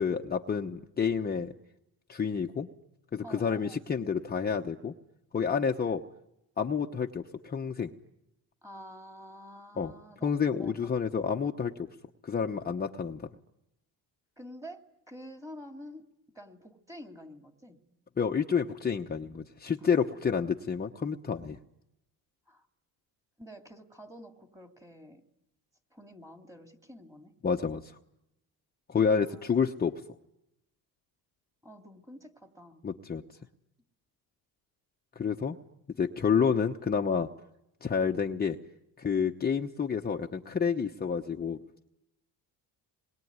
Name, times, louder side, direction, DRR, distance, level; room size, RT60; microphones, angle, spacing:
voice 1, 0.0-1.5 2.1-2.7 3.1-4.9 5.3-6.0 6.6-7.9 9.8-9.9 10.2-11.9 12.2-13.3 18.2-21.6 27.4-28.0 28.9-30.0 32.8-33.2 35.1-35.6 36.0-37.3 37.8-38.6 39.0-41.6, left 6 dB, 25° left, 2 dB, 1.0 m, -29 dB
voice 2, 3.2-3.8 8.6-10.9 14.4-16.1 16.3-17.9 19.8-20.5 22.5-22.7 23.4-25.2 25.9-27.3 29.2-29.5 31.6-32.8 33.4-33.5, equal, 10° right, 5 dB, 2.6 m, -49 dB
27.0 x 22.0 x 9.6 m, 0.88 s
cardioid pair, 115°, 40 cm